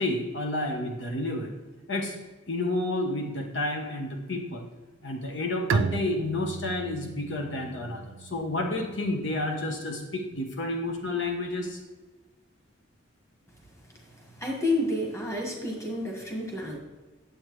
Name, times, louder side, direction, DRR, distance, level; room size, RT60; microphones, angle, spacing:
voice 1, 0.0-1.5 1.9-2.2 2.5-4.7 5.0-11.8, left 2 dB, 65° left, 2 dB, 1.0 m, -30 dB
Bowed string instrument, 5.7-9.2, right 5 dB, 90° right, 0.3 m, -33 dB
voice 2, 14.4-16.8, left 1 dB, 15° left, -1 dB, 1.5 m, -29 dB
9.3 x 7.9 x 3.1 m, 1.2 s
head